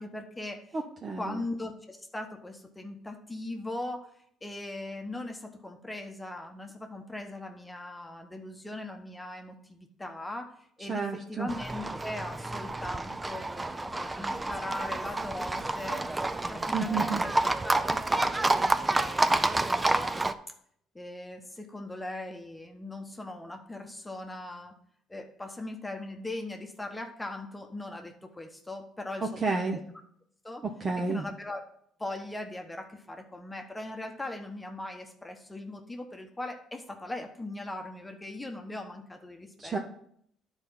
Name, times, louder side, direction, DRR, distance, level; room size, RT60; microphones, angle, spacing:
voice 1, 0.0-0.8 1.1-4.1 4.4-16.0 16.5-19.8 20.9-24.7 25.1-29.8 30.4-30.6 31.0-31.6 32.0-39.8, left 2 dB, 10° left, 3 dB, 1.1 m, -40 dB
voice 2, 0.7-1.4 10.9-11.5 16.7-17.2 29.4-29.8 30.6-31.2 39.6-39.8, right 4 dB, 35° right, 2 dB, 0.9 m, -31 dB
Livestock farm animals working animals, 11.5-20.3, right 2 dB, 15° right, 0.5 m, -29 dB
9.8 x 4.5 x 5.6 m, 0.66 s
cardioid pair, 90°, 0 cm